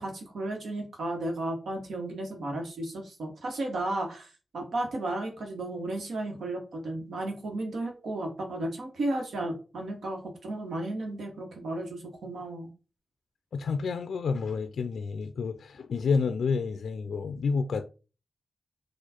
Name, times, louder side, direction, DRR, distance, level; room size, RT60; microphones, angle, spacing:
voice 1, 0.0-12.7, right 1 dB, 85° right, 1.2 m, -34 dB
voice 2, 13.5-17.8, left 5 dB, 90° left, 0.3 m, -29 dB
4.5 x 2.4 x 4.3 m
wide cardioid pair, 140°, 0 cm